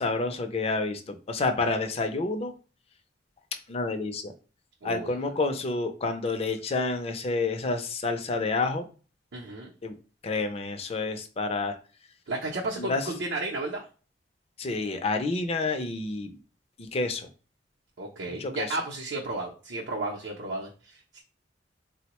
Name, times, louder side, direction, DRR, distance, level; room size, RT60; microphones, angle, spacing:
voice 1, 0.0-2.5 3.7-4.3 4.8-8.9 9.8-9.9 10.2-11.8 12.8-13.0 14.6-16.3 16.8-17.3 18.4-18.7, left 3 dB, 35° left, 7 dB, 0.4 m, -29 dB
voice 2, 4.8-5.3 9.3-9.7 12.3-13.8 18.0-21.2, right 2 dB, 75° right, -3 dB, 0.6 m, -33 dB
3.7 x 2.1 x 2.9 m, 0.36 s
head